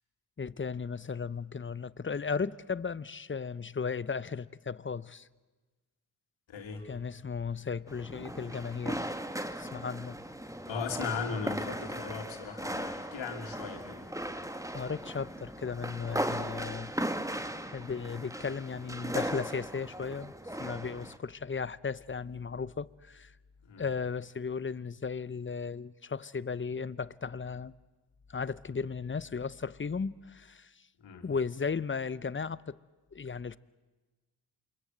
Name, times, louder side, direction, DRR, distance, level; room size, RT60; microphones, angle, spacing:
voice 1, 0.4-5.3 6.9-9.1 9.6-10.2 14.7-16.9 17.7-20.3 20.6-23.3 23.8-27.7 28.3-30.7 31.2-32.8 33.1-33.6, left 5 dB, 25° left, 0.8 m, -35 dB
voice 2, 6.5-6.9 9.5-9.6 10.7-14.1 23.6-23.9 31.0-31.3, left 5 dB, 80° left, 3.1 m, -38 dB
sound 1, 7.9-21.2, right 1 dB, 5° right, 1.9 m, -38 dB
28.0 x 24.0 x 8.0 m
supercardioid pair, 45°, 44 cm